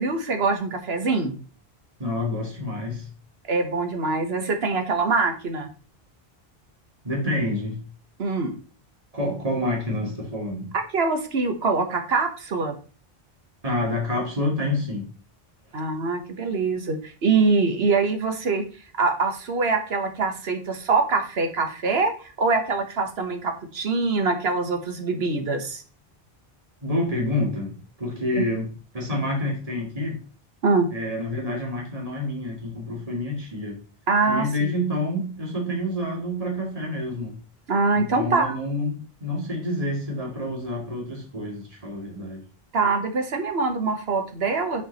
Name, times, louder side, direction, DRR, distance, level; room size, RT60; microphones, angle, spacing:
voice 1, 0.0-1.4 3.5-5.7 8.2-8.5 10.9-12.7 15.7-18.6 19.0-25.8 28.3-28.4 30.6-30.9 34.1-34.9 37.7-38.6 42.7-44.8, right 4 dB, 80° right, 6 dB, 1.4 m, -24 dB
voice 2, 2.0-3.1 7.0-7.8 9.1-10.7 13.6-15.1 26.8-30.2 30.9-33.8 34.3-37.3 38.0-42.4, left 1 dB, 35° right, -2 dB, 2.2 m, -28 dB
7.3 x 4.6 x 4.0 m, 0.38 s
omnidirectional pair, 1.0 m